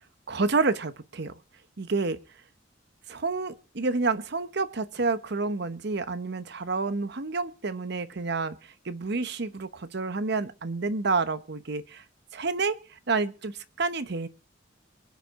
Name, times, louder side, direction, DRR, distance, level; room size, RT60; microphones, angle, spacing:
voice 1, 0.3-1.3 1.8-2.2 3.1-8.6 8.8-12.0 12.3-12.8 13.1-14.3, right 3 dB, 60° right, 0.9 m, -29 dB
24.0 x 8.3 x 3.7 m
head